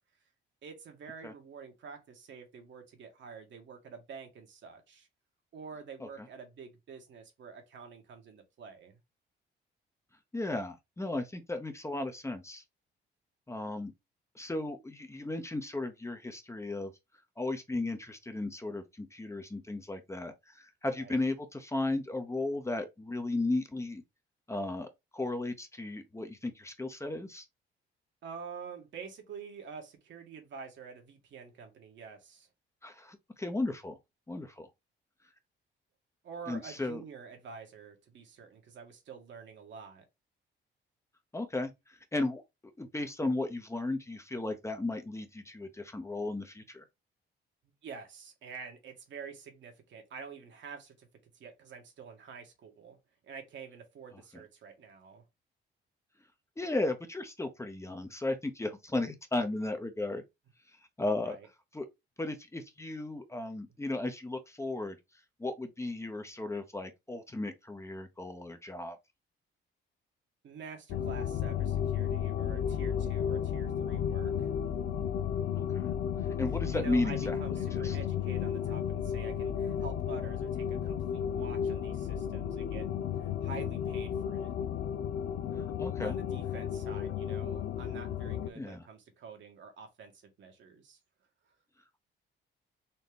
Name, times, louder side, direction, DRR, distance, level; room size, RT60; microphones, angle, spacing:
voice 1, 0.6-5.1 5.5-9.0 21.0-21.2 28.2-32.5 36.2-40.0 47.6-51.1 51.3-55.2 61.2-61.5 70.4-74.5 76.7-82.9 83.2-84.5 86.0-90.1 90.4-91.0, right 6 dB, 70° right, 1.6 m, -48 dB
voice 2, 10.3-12.6 13.5-13.9 14.3-16.9 17.4-24.0 24.5-27.5 32.8-34.0 34.3-34.7 36.5-37.0 41.3-46.8 56.6-60.2 61.0-61.4 61.7-61.9 62.2-65.0 65.4-69.0 75.5-75.9 76.4-78.0 85.8-86.1 88.6-88.8, left 2 dB, 15° left, 0.8 m, -35 dB
sound 1, 70.9-88.5, left 9 dB, 85° left, 0.5 m, -33 dB
4.2 x 2.9 x 3.4 m
cardioid pair, 90°, 20 cm